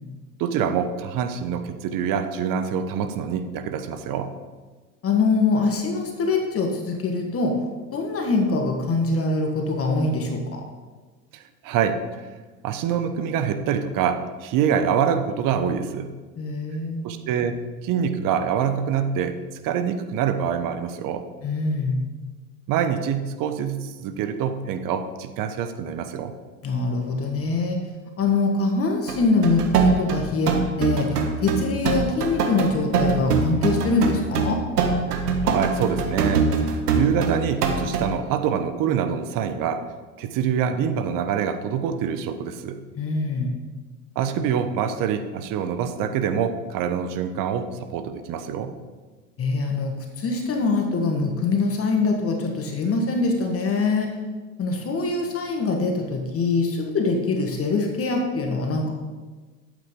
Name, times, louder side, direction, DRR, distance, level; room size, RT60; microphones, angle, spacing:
voice 1, 0.4-4.3 11.3-12.2 12.6-16.1 17.0-17.6 17.8-19.4 19.6-21.2 22.7-26.3 35.4-39.8 40.2-42.8 44.1-48.8, right 7 dB, 45° right, 9 dB, 1.0 m, -25 dB
voice 2, 5.0-7.6 7.9-10.6 16.4-17.1 21.4-22.0 26.6-27.8 28.2-34.6 43.0-43.6 49.4-54.2 54.6-58.9, left 3 dB, 30° left, 2 dB, 1.5 m, -23 dB
sound 1, 29.1-38.1, right 4 dB, 80° right, 1.4 m, -23 dB
12.0 x 8.5 x 3.7 m, 1.3 s
hypercardioid pair, 90°, 45 cm